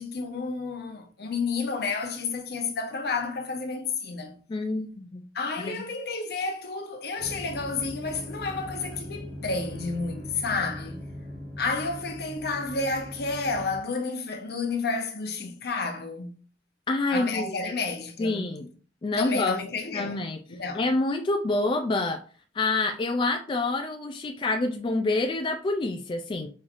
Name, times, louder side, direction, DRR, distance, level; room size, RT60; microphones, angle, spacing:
voice 1, 0.0-4.4 5.3-11.1 11.6-16.4 17.1-18.6 19.1-20.9, left 4 dB, 65° left, 0.8 m, -31 dB
voice 2, 4.5-5.2 5.6-5.8 16.9-17.5 18.2-18.7 19.0-19.6 19.9-20.4 20.7-22.2 22.6-26.5, left 2 dB, 30° left, 0.3 m, -27 dB
sound 1, 7.2-13.8, left 1 dB, 5° right, 1.3 m, -40 dB
5.4 x 3.1 x 2.5 m
head